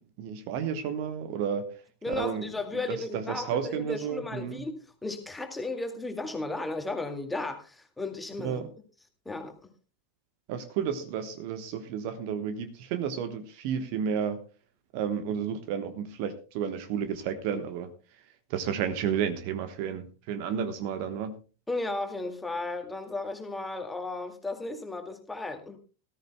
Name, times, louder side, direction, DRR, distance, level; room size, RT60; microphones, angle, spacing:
voice 1, 0.2-1.7 2.1-2.5 2.9-4.7 8.4-8.7 10.5-14.4 14.9-17.9 18.5-21.4, right 8 dB, 45° right, 11 dB, 1.1 m, -32 dB
voice 2, 2.0-8.7 9.3-9.7 21.7-25.8, left 2 dB, 5° left, 6 dB, 2.1 m, -35 dB
18.5 x 13.5 x 2.2 m, 0.33 s
figure-of-eight pair, 90°, 0 cm